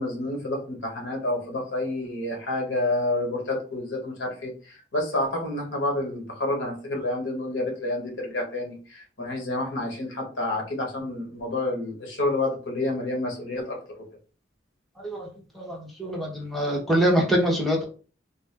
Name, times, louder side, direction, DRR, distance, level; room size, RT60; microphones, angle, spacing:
voice 1, 0.0-13.7, left 2 dB, 85° left, 1 dB, 1.3 m, -29 dB
voice 2, 15.0-15.3 15.5-17.8, equal, ahead, -3 dB, 0.9 m, -24 dB
3.7 x 2.4 x 3.3 m, 0.37 s
head